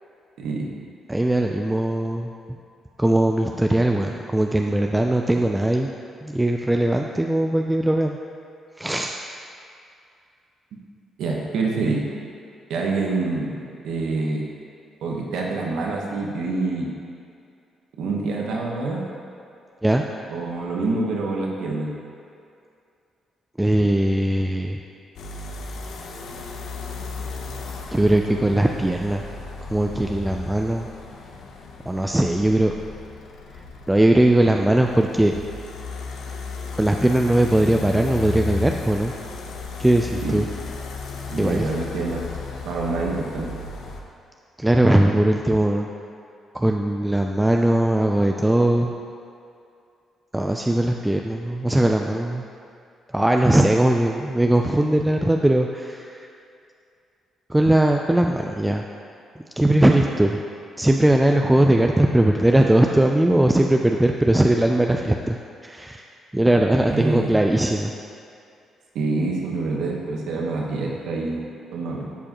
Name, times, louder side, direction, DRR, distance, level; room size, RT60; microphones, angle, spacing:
voice 1, 0.4-0.7 11.2-12.1 12.7-13.6 13.8-14.5 15.0-16.9 18.0-19.1 20.3-21.9 40.2-40.4 41.3-42.3 42.6-43.5 66.9-67.3 68.9-72.1, right 3 dB, 80° right, -1 dB, 1.2 m, -26 dB
voice 2, 1.1-2.3 3.0-5.9 6.2-8.2 8.8-9.1 19.8-20.1 23.6-24.8 27.9-29.2 29.7-30.9 31.9-32.7 33.5-35.3 36.7-39.1 39.8-40.5 41.4-41.7 44.6-45.9 46.5-48.9 50.3-52.4 53.1-56.3 57.5-58.8 59.4-60.4 60.8-65.4 65.6-66.0 66.3-67.9, right 1 dB, 10° right, 2 dB, 0.4 m, -20 dB
sound 1, 25.2-44.0, left 4 dB, 75° left, 0.8 m, -34 dB
13.0 x 4.8 x 3.0 m, 2.4 s
cardioid pair, 90°, 0 cm